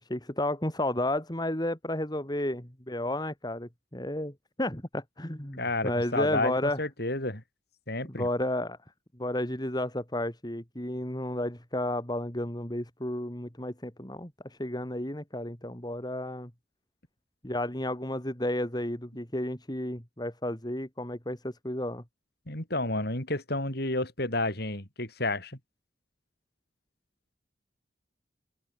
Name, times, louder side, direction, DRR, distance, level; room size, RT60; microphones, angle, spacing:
voice 1, 0.0-6.8 8.1-8.8 9.1-16.5 17.4-22.0, left 1 dB, 20° left, 3.3 m, -32 dB
voice 2, 5.6-7.4 7.9-8.3 22.5-25.6, left 2 dB, 55° left, 7.5 m, -31 dB
open air
head